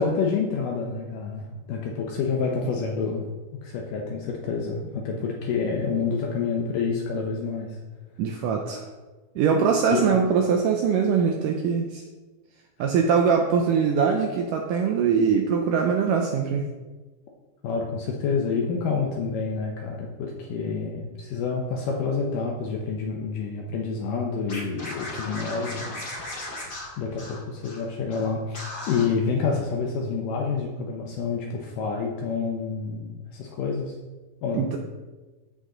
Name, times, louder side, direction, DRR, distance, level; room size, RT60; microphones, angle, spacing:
voice 1, 0.0-3.3 3.6-7.8 9.9-10.0 17.6-26.0 27.0-34.0 34.4-34.7, left 5 dB, 70° left, 0 dB, 2.2 m, -28 dB
voice 2, 8.2-8.8 9.4-12.0 12.8-16.7 34.5-34.8, right 6 dB, 75° right, 2 dB, 2.0 m, -22 dB
Scratching (performance technique), 24.5-27.8 28.1-28.2 28.5-29.0, left 1 dB, 30° left, 2.3 m, -36 dB
14.0 x 5.3 x 3.8 m, 1.2 s
omnidirectional pair, 4.3 m